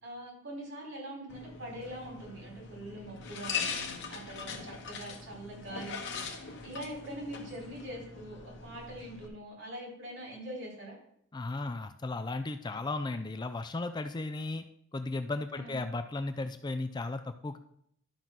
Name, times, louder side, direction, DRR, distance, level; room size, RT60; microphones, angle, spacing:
voice 1, 0.0-10.9 15.5-15.9, right 1 dB, 60° right, -3 dB, 4.5 m, -43 dB
sound 1, 1.3-9.3, left 5 dB, 55° left, 1.3 m, -41 dB
voice 2, 11.3-14.6 14.9-17.6, left 2 dB, 20° left, 9 dB, 0.3 m, -35 dB
11.5 x 4.0 x 6.0 m, 0.70 s
head